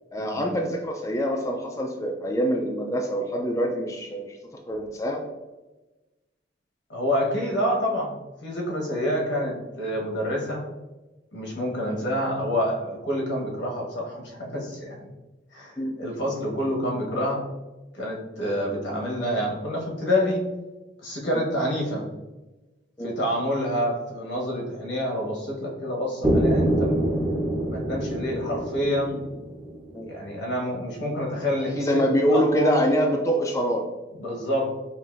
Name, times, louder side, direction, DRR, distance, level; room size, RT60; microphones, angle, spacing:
voice 1, 0.1-4.4 4.7-5.2 11.8-12.0 15.8-15.9 23.0-23.1 28.5-28.6 29.9-30.1 31.5-33.9, equal, 15° left, 1 dB, 0.4 m, -25 dB
voice 2, 6.9-8.1 8.4-10.6 11.3-15.0 15.5-17.4 17.9-20.5 21.0-22.0 23.0-27.1 27.7-29.2 30.0-32.0 32.3-32.8 34.2-34.7, equal, 85° left, -2 dB, 1.1 m, -27 dB
sound 1, 26.2-30.1, right 1 dB, 10° right, 0.7 m, -25 dB
5.5 x 2.5 x 2.5 m, 1.1 s
head